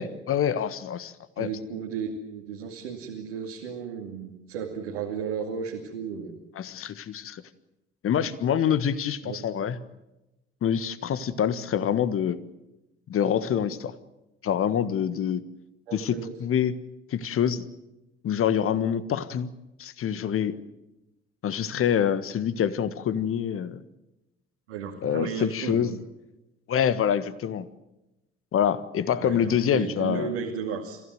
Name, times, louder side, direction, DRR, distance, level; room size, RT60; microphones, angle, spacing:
voice 1, 0.0-1.5 6.5-7.4 8.0-9.8 10.6-12.4 13.1-13.9 14.4-15.4 15.9-16.8 17.1-17.6 18.2-19.5 19.8-20.6 21.4-23.8 25.0-26.0 26.7-27.7 28.5-30.4, left 8 dB, 40° left, 15 dB, 1.5 m, -26 dB
voice 2, 1.4-6.4 9.2-9.7 15.9-16.3 24.7-25.9 29.2-31.0, right 6 dB, 70° right, 0 dB, 2.6 m, -34 dB
29.5 x 15.5 x 9.2 m, 0.99 s
figure-of-eight pair, 50°, 33 cm